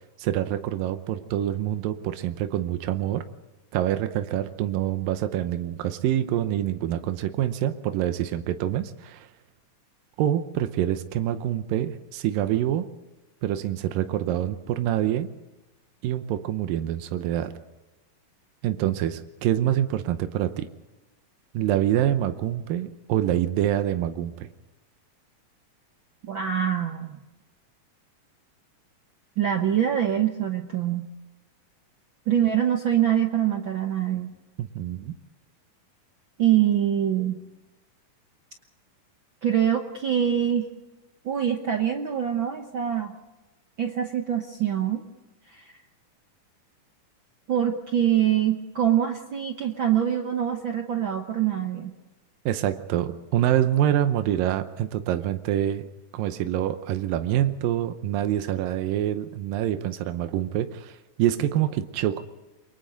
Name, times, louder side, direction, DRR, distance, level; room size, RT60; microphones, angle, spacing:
voice 1, 0.2-3.3 3.7-9.3 10.2-12.9 13.4-15.3 16.0-17.5 18.6-20.7 21.5-24.5 34.6-35.1 52.5-55.9 56.1-62.2, right 12 dB, 85° right, 9 dB, 2.6 m, -26 dB
voice 2, 26.2-27.2 29.4-31.1 32.3-34.3 36.4-37.4 39.4-40.7 41.2-43.1 43.8-45.0 45.5-45.7 47.5-51.9, right 10 dB, 70° right, 4 dB, 1.1 m, -24 dB
29.0 x 23.5 x 4.0 m, 1.1 s
omnidirectional pair, 3.9 m